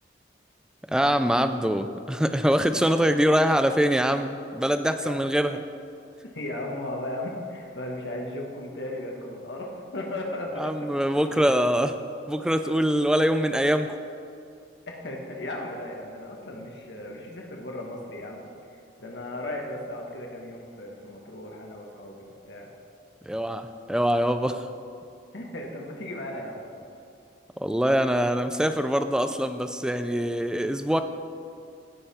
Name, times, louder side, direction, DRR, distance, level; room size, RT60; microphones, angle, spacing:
voice 1, 0.9-5.6 10.6-12.0 12.3-14.0 23.2-24.7 27.6-31.0, equal, 5° right, 9 dB, 0.3 m, -24 dB
voice 2, 6.2-10.7 11.3-11.4 14.9-22.7 25.3-26.6, left 1 dB, 75° left, -1 dB, 1.4 m, -36 dB
16.5 x 5.7 x 4.3 m, 2.5 s
head